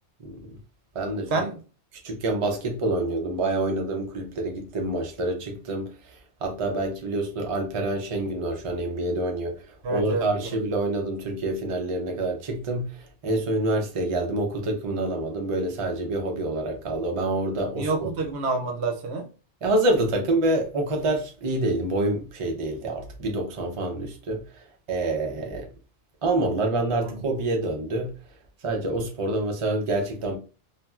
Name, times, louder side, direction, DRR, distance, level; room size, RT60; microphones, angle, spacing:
voice 1, 0.2-0.6 0.9-1.4 2.0-18.1 19.6-25.7 26.2-28.1 28.6-30.4, right 2 dB, 40° right, 0.5 m, -27 dB
voice 2, 9.8-10.3 17.8-19.3 27.0-27.1, right 3 dB, 70° right, 0.9 m, -27 dB
3.0 x 2.4 x 2.3 m
omnidirectional pair, 1.2 m